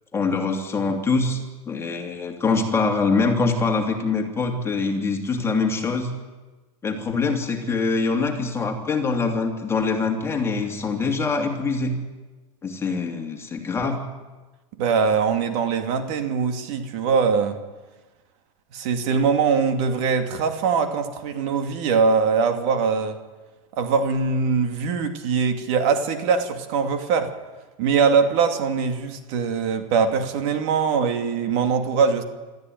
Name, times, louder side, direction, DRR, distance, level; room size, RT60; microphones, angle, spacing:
voice 1, 0.1-6.1 6.8-12.0 12.6-14.0, left 4 dB, 15° left, 2 dB, 2.9 m, -24 dB
voice 2, 14.8-17.6 18.7-23.2 23.7-27.3 27.8-32.2, right 5 dB, 55° right, 7 dB, 2.5 m, -22 dB
26.0 x 13.5 x 9.4 m, 1.2 s
supercardioid pair, 140°, 18 cm